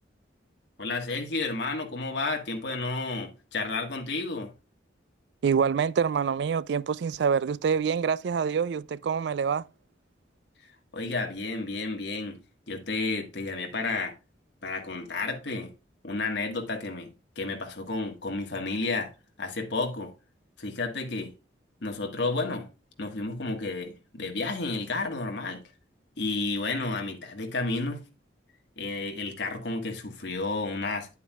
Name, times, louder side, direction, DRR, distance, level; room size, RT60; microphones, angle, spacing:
voice 1, 0.8-4.5 10.9-12.4 12.7-14.1 14.6-15.7 16.0-17.1 17.3-19.1 19.4-20.1 20.6-21.3 21.8-22.7 23.0-25.6 26.2-28.0 28.8-31.1, left 3 dB, 65° left, 1.5 m, -31 dB
voice 2, 5.4-9.6, right 6 dB, 65° right, 0.3 m, -26 dB
9.1 x 8.3 x 2.3 m
head